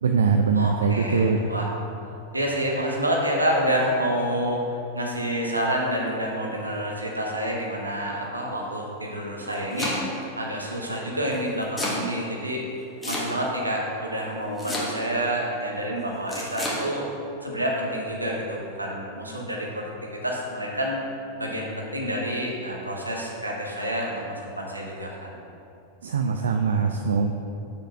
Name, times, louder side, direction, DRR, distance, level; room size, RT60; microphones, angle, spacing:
voice 1, 0.0-1.5 26.0-27.3, right 5 dB, 65° right, 4 dB, 0.4 m, -22 dB
voice 2, 0.5-1.7 2.3-4.7 4.9-12.6 13.0-17.0 17.4-21.0 21.4-25.4, equal, 85° right, -2 dB, 1.2 m, -28 dB
Domestic sounds home sounds, 9.3-10.3 11.3-12.0 13.0-13.6 14.6-15.2 16.3-16.8, left 1 dB, 10° left, 1.5 m, -31 dB
6.2 x 5.2 x 5.8 m, 2.7 s
figure-of-eight pair, 90°, 0 cm